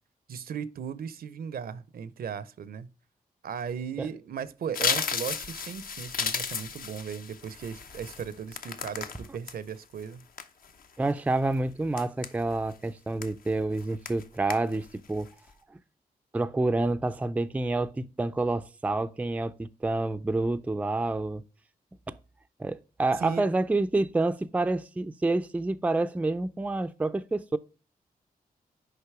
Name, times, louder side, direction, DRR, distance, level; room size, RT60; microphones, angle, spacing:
voice 1, 0.3-2.9 3.4-10.2 23.2-23.4, right 7 dB, 70° right, 0.6 m, -37 dB
sound 1, 4.7-9.5 10.0-10.8 11.3-11.5 12.0-12.7 13.2-13.5 13.8-14.2 14.5-14.9 15.3-15.5, left 6 dB, 65° left, 0.9 m, -33 dB
voice 2, 11.0-15.3 16.3-21.4 22.1-22.2 22.6-27.6, right 2 dB, 10° right, 0.4 m, -28 dB
6.6 x 5.2 x 4.7 m
wide cardioid pair, 110°, 16 cm